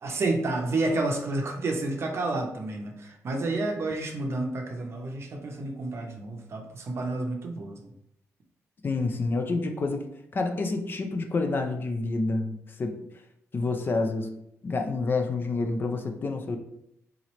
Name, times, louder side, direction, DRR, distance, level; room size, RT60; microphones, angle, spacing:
voice 1, 0.0-7.9, right 2 dB, 50° right, 2 dB, 0.6 m, -30 dB
voice 2, 8.8-10.1 10.3-13.0 13.5-14.3 14.6-16.6, left 3 dB, 40° left, 5 dB, 0.5 m, -28 dB
3.8 x 2.9 x 3.0 m, 0.76 s
cardioid pair, 110°, 6 cm